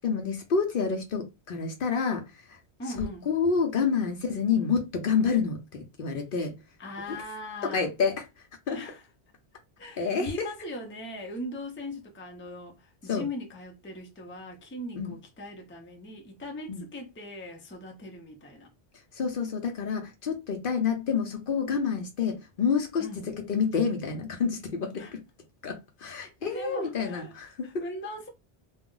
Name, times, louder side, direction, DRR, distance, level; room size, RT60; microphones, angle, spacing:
voice 1, 0.0-2.6 3.0-6.5 7.1-7.2 7.6-8.8 10.0-10.5 13.1-13.2 15.0-15.1 16.7-16.8 19.1-25.2 25.6-27.8, left 6 dB, 60° left, 0.7 m, -28 dB
voice 2, 2.8-3.3 6.8-7.9 8.7-9.0 9.8-18.7 23.0-23.3 25.0-25.1 26.5-27.3 27.6-28.3, left 1 dB, 15° left, 0.4 m, -40 dB
2.3 x 2.1 x 3.7 m
omnidirectional pair, 1.1 m